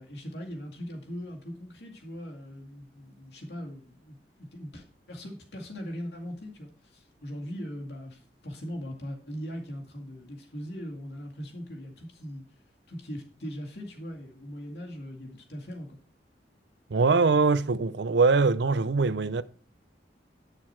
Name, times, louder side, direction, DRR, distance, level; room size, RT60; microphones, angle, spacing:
voice 1, 0.0-12.4 12.9-16.0, equal, 65° left, 2.2 m, -40 dB
voice 2, 16.9-19.4, right 4 dB, 75° right, 0.6 m, -22 dB
9.5 x 6.5 x 4.4 m
head